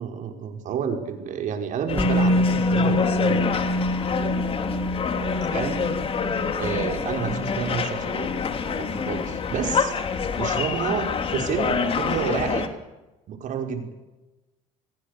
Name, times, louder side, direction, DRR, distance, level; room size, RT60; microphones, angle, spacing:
voice 1, 0.0-4.6 5.5-5.8 6.6-8.3 8.6-9.9 10.4-12.7 13.3-13.9, right 7 dB, 60° right, 4 dB, 5.4 m, -30 dB
sound 1, 1.9-12.7, left 6 dB, 40° left, 3.2 m, -27 dB
Musical instrument, 2.0-9.9 10.2-10.3, left 1 dB, 10° left, 3.2 m, -27 dB
28.5 x 21.5 x 6.9 m, 1.1 s
supercardioid pair, 95°, 15 cm